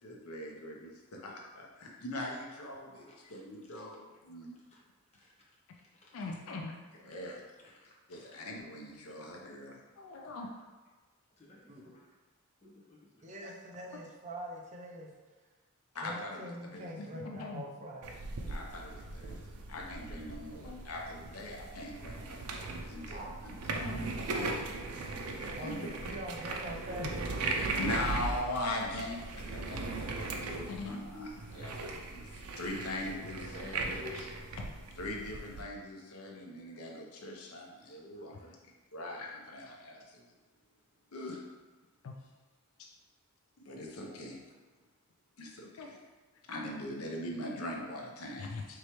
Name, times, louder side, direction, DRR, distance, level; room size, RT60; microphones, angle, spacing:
voice 1, 0.0-4.6 7.0-7.4 8.1-9.8 15.9-16.9 18.5-23.6 25.3-25.9 27.7-31.7 32.1-34.0 35.0-38.5 38.9-40.2 41.1-41.4 43.7-44.4 45.4-46.0 46.5-48.5, left 1 dB, 85° left, 0 dB, 0.8 m, -41 dB
voice 2, 3.0-3.8 4.5-4.8 5.1-5.3 5.9-6.4 7.2-8.4 10.2-10.5 11.4-12.1 12.6-13.5 20.8-20.9 38.1-38.5, left 1 dB, 30° left, -5 dB, 0.9 m, -63 dB
voice 3, 6.1-6.8 10.0-10.5 17.0-17.6 20.1-20.3 20.6-21.0 23.7-24.1 24.4-24.5 27.0-27.1 30.7-31.0 34.1-34.3 39.6-39.8 42.0-42.1 42.8-42.9 45.8-45.9 48.4-48.8, left 3 dB, 65° left, 2 dB, 0.4 m, -42 dB
voice 4, 13.2-15.1 16.0-18.2 23.1-23.3 24.3-24.7 25.6-28.1 34.0-34.3, equal, 35° right, -1 dB, 0.6 m, -44 dB
sound 1, 18.0-35.6, right 3 dB, 90° right, 0.5 m, -39 dB
4.7 x 3.1 x 3.0 m, 1.3 s
head